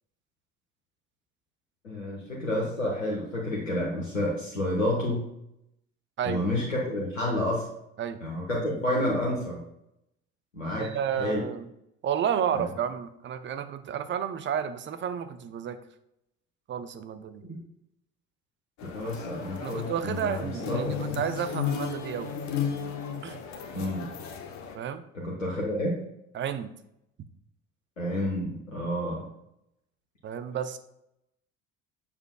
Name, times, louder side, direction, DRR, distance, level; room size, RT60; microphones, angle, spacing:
voice 1, 1.8-5.3 6.2-7.7 8.2-9.6 10.5-10.9 11.2-11.4 12.5-12.6 18.9-21.2 23.7-24.1 25.1-26.0 28.0-29.3, left 1 dB, 85° left, -3 dB, 1.0 m, -29 dB
voice 2, 10.8-11.7 12.0-15.8 16.7-17.4 19.6-22.3 23.2-23.4 24.7-25.0 26.3-26.7 30.2-30.8, right 8 dB, 30° right, 10 dB, 0.6 m, -31 dB
sound 1, 18.8-24.8, left 7 dB, 45° left, 1.0 m, -34 dB
6.9 x 6.6 x 2.2 m, 0.81 s
figure-of-eight pair, 55°, 38 cm